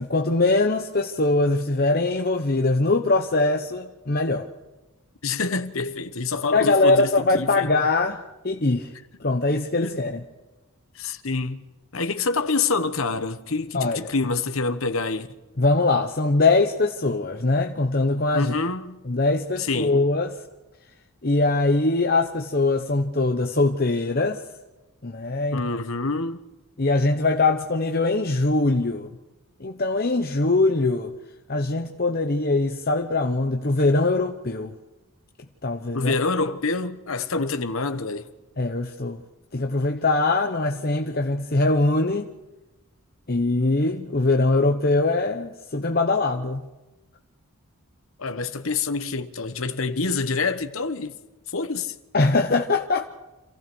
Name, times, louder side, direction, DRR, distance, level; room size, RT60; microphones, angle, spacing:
voice 1, 0.0-4.5 6.5-8.9 9.2-10.2 13.7-14.1 15.6-18.5 19.1-20.3 21.2-24.4 25.0-25.6 26.8-29.1 29.6-31.1 31.5-34.7 35.6-36.1 38.6-39.2 39.5-42.3 43.3-46.6 52.1-53.0, left 2 dB, 45° left, 1.0 m, -22 dB
voice 2, 5.2-7.7 9.8-10.0 10.9-11.6 11.9-15.3 18.3-19.0 19.6-20.0 25.5-26.4 35.9-38.3 48.2-51.2 51.5-51.9, left 3 dB, 70° left, 1.2 m, -27 dB
27.0 x 15.5 x 6.3 m
head